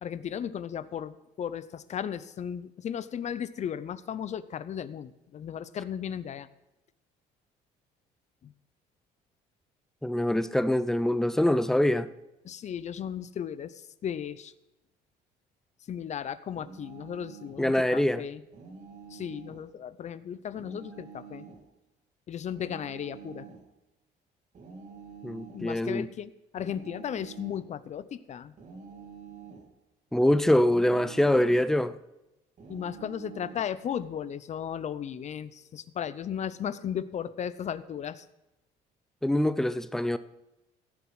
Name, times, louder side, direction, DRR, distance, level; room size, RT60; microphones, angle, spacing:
voice 1, 0.0-6.5 8.4-8.5 12.4-14.5 15.9-18.4 19.1-21.5 22.3-23.5 25.5-28.5 32.7-38.3, left 9 dB, 45° left, 0.6 m, -35 dB
voice 2, 10.0-12.1 17.6-18.2 25.2-26.1 30.1-31.9 39.2-40.2, left 1 dB, 5° left, 0.5 m, -24 dB
sound 1, 16.5-17.6 18.5-19.7 20.5-21.7 22.5-23.6 24.5-25.7 26.6-27.7 28.6-29.7 30.6-31.7 32.6-33.7, right 6 dB, 50° right, 2.5 m, -47 dB
16.0 x 7.0 x 4.8 m
cardioid pair, 110°, 17 cm